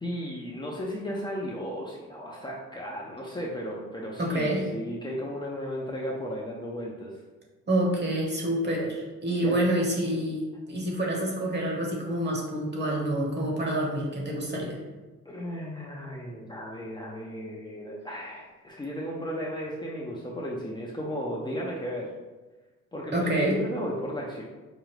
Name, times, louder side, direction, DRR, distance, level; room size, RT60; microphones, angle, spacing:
voice 1, 0.0-7.2 9.4-9.6 15.3-22.1 22.9-24.4, equal, 15° left, -4 dB, 0.6 m, -35 dB
voice 2, 4.2-4.6 7.7-14.8 23.1-23.6, right 1 dB, 35° right, -1 dB, 1.2 m, -27 dB
5.0 x 2.2 x 3.2 m, 1.2 s
cardioid pair, 90°, 30 cm